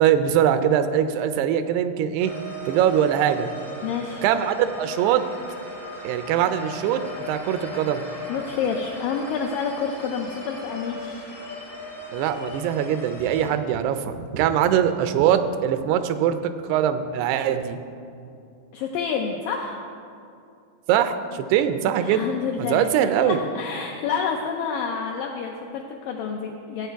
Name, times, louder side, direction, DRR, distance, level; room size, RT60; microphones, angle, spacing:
voice 1, 0.0-2.3 2.7-3.5 4.2-5.2 6.0-7.0 7.3-8.0 12.1-17.8 20.9-22.3 22.6-23.4, right 9 dB, 85° right, 10 dB, 2.6 m, -22 dB
sound 1, 2.2-13.5, equal, 45° left, 0.4 m, -38 dB
voice 2, 3.8-4.2 8.3-11.4 18.7-19.8 22.0-26.9, left 6 dB, 85° left, 2 dB, 1.9 m, -29 dB
15.0 x 7.8 x 4.6 m, 2.5 s
omnidirectional pair, 4.6 m